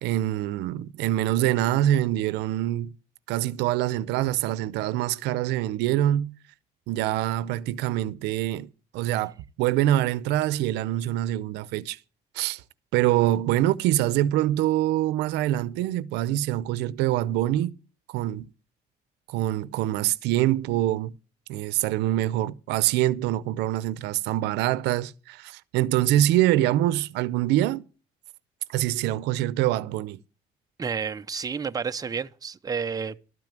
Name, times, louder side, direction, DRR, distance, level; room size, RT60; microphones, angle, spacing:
voice 1, 0.0-2.9 3.3-6.3 6.9-12.0 12.3-12.6 12.9-17.7 18.1-18.5 19.3-21.2 21.5-27.8 28.7-30.2, right 14 dB, 90° right, 0.7 m, -25 dB
voice 2, 30.8-33.2, right 6 dB, 20° right, 0.7 m, -30 dB
12.5 x 5.9 x 8.9 m
cardioid pair, 110°, 17 cm